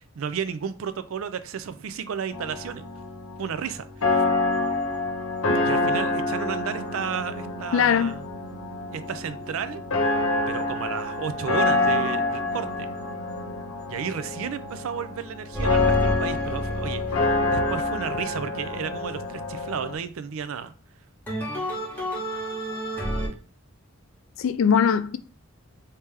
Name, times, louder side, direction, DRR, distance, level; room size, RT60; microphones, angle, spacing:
voice 1, 0.0-2.8 3.4-4.2 5.6-8.2 8.9-9.8 10.5-12.9 13.9-20.7, right 7 dB, 75° right, 0.4 m, -33 dB
sound 1, 2.3-19.9, left 2 dB, 90° left, 0.8 m, -27 dB
voice 2, 7.7-8.2 24.4-25.2, left 7 dB, 70° left, 0.3 m, -21 dB
sound 2, 15.5-19.0 21.3-23.3, equal, 10° left, 1.4 m, -30 dB
3.3 x 2.8 x 3.4 m
head